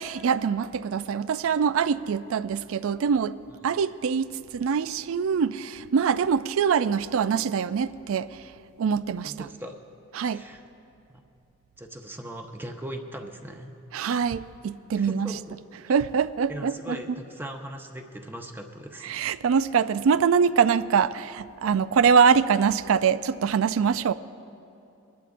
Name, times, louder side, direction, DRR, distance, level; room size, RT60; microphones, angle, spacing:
voice 1, 0.0-3.4 3.6-8.4 8.8-9.5 10.1-10.4 13.9-15.3 15.9-17.0 19.0-24.1, right 6 dB, 75° right, 0.4 m, -24 dB
voice 2, 9.2-9.7 10.3-10.6 11.1-11.2 11.8-13.7 14.9-15.6 16.5-19.1, right 1 dB, 10° right, 0.6 m, -39 dB
23.0 x 11.5 x 2.5 m
head